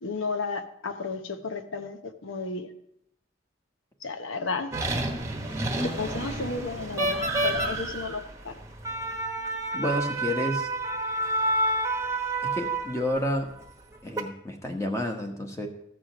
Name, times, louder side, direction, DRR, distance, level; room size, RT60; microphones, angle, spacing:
voice 1, 0.0-2.7 4.0-4.7 5.8-8.5, left 4 dB, 90° left, 8 dB, 1.0 m, -33 dB
sound 1, 4.7-13.2 13.9-14.2, right 2 dB, 15° right, 1.0 m, -29 dB
voice 2, 9.7-10.7 12.4-13.5 14.0-15.7, left 1 dB, 15° left, 4 dB, 1.1 m, -30 dB
14.5 x 5.0 x 5.9 m, 0.74 s
head